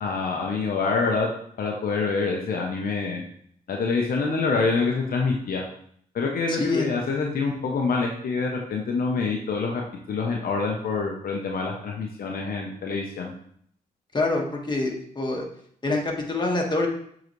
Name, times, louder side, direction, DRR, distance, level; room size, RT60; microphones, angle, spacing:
voice 1, 0.0-1.3 1.6-3.2 3.7-5.6 6.1-9.8 10.1-13.3, left 4 dB, 65° left, 0 dB, 0.8 m, -26 dB
voice 2, 6.5-6.9 14.1-15.5 15.8-16.9, left 2 dB, 30° left, 0 dB, 1.7 m, -25 dB
7.5 x 4.0 x 3.2 m, 0.64 s
cardioid pair, 60°, 16 cm